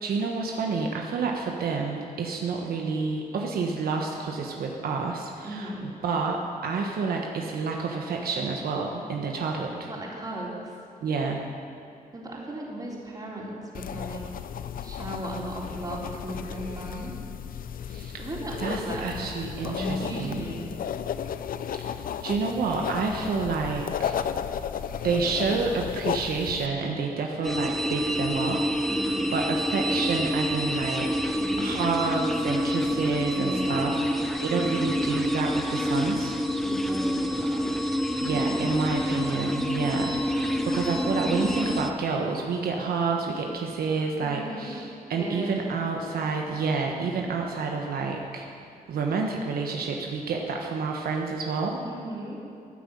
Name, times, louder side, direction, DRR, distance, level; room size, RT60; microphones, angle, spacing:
voice 1, 0.0-9.9 11.0-11.4 17.9-18.2 18.6-20.4 21.9-24.1 25.0-36.3 38.2-48.5 48.9-51.8, right 4 dB, 80° right, 1 dB, 1.3 m, -29 dB
voice 2, 5.4-6.0 9.9-10.7 12.1-14.3 14.8-17.2 18.2-19.3 19.6-20.8 28.9-29.3 31.4-32.2 33.3-34.1 36.6-37.7 38.3-39.2 44.2-44.8 45.2-45.6 51.8-52.4, right 1 dB, 25° right, -4 dB, 3.9 m, -36 dB
sound 1, 13.7-26.7, left 8 dB, 65° left, 0.6 m, -34 dB
sound 2, 27.4-41.9, equal, ahead, 0.9 m, -27 dB
14.0 x 9.4 x 8.7 m, 2.5 s
cardioid pair, 110°, 16 cm